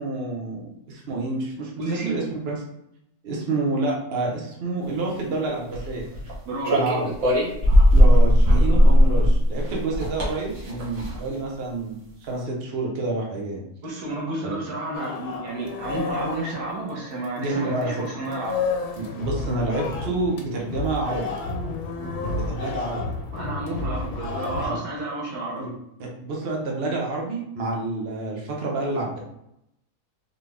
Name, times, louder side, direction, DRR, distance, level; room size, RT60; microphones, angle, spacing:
voice 1, 0.0-2.6 3.2-6.1 6.7-7.1 7.9-13.6 14.4-14.5 17.4-17.9 19.0-21.4 22.3-23.0 24.6-24.8 25.6-25.7 26.0-29.2, right 2 dB, 45° right, -1 dB, 1.1 m, -28 dB
voice 2, 1.8-2.2 6.5-6.8 13.8-18.6 23.3-25.7, right 2 dB, 90° right, -3 dB, 1.7 m, -31 dB
sound 1, 5.7-6.3 6.6-11.3, equal, 60° right, 1.7 m, -17 dB
sound 2, 14.9-17.5 17.8-24.7, left 3 dB, 75° left, 1.2 m, -31 dB
4.2 x 3.0 x 3.4 m, 0.79 s
omnidirectional pair, 1.6 m